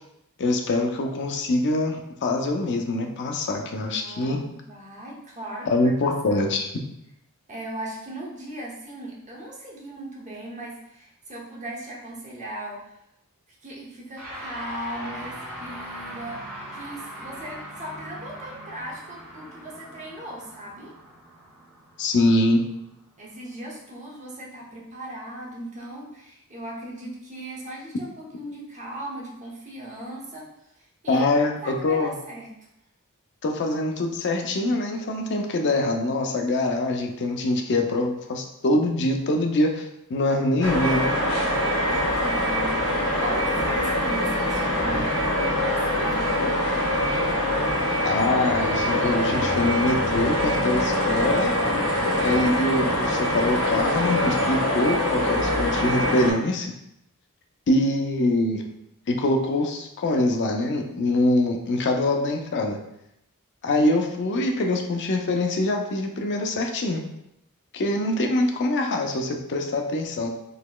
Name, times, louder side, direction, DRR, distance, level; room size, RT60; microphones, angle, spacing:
voice 1, 0.4-4.4 5.7-6.7 22.0-22.6 31.1-32.1 33.4-41.1 48.0-51.5 52.2-56.7 57.7-58.6 59.1-62.8 63.6-67.1 67.7-70.3, left 2 dB, 50° left, 3 dB, 0.5 m, -24 dB
voice 2, 3.8-6.5 7.5-12.9 13.6-20.9 23.2-30.5 30.7-31.3 31.6-32.5 42.2-46.5, right 1 dB, 35° right, -3 dB, 0.8 m, -38 dB
sound 1, 14.1-23.6, right 1 dB, 80° right, 1.2 m, -40 dB
sound 2, 40.6-56.3, left 1 dB, 80° left, 1.3 m, -24 dB
4.0 x 2.9 x 2.3 m, 0.82 s
head